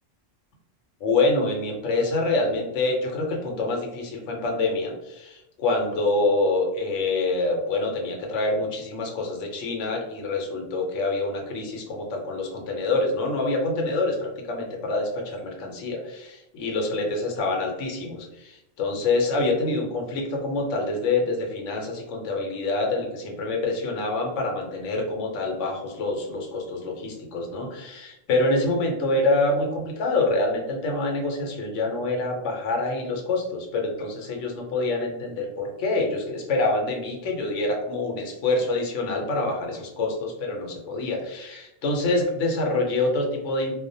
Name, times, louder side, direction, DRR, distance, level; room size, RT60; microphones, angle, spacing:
voice 1, 1.0-43.8, left 2 dB, 75° left, 1 dB, 0.9 m, -26 dB
2.3 x 2.1 x 2.5 m, 0.91 s
omnidirectional pair, 1.3 m